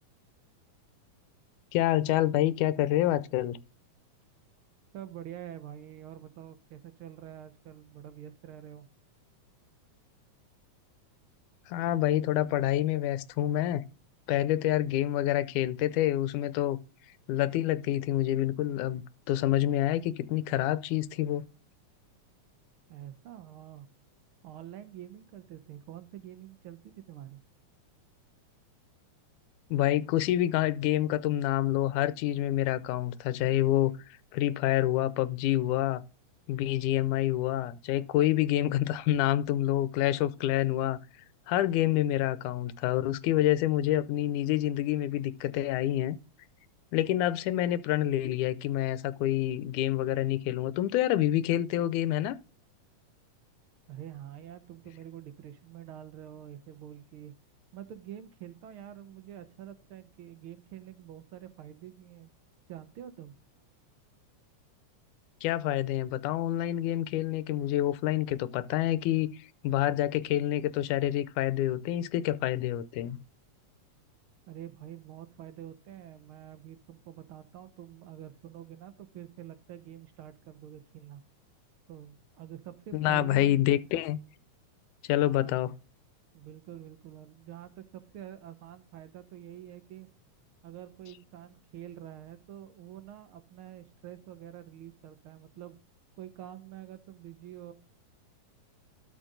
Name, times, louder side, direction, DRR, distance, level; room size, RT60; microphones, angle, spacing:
voice 1, 1.7-3.6 11.7-13.8 14.3-16.8 17.3-21.5 29.7-33.9 34.3-36.0 36.5-41.0 41.5-46.2 46.9-52.4 65.4-73.2 82.9-84.2 85.0-85.7, left 13 dB, 85° left, 2.2 m, -27 dB
voice 2, 4.9-8.9 22.9-23.9 24.4-27.4 53.9-57.3 57.7-62.3 62.7-63.3 74.5-81.2 81.9-83.6 85.3-85.6 86.3-90.1 90.6-95.8 96.2-97.7, right 11 dB, 75° right, 1.2 m, -46 dB
13.0 x 5.1 x 3.8 m
omnidirectional pair, 3.5 m